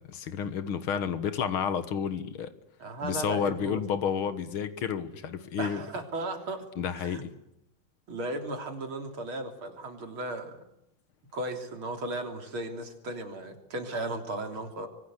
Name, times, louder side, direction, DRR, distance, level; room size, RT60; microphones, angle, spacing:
voice 1, 0.0-2.5 3.0-5.8 6.8-7.3, left 7 dB, 85° left, 2.3 m, -31 dB
voice 2, 2.8-3.8 5.6-6.6 6.9-7.2 8.1-10.6 11.3-14.9, right 2 dB, 80° right, 4.0 m, -35 dB
24.5 x 24.5 x 8.2 m
omnidirectional pair, 2.2 m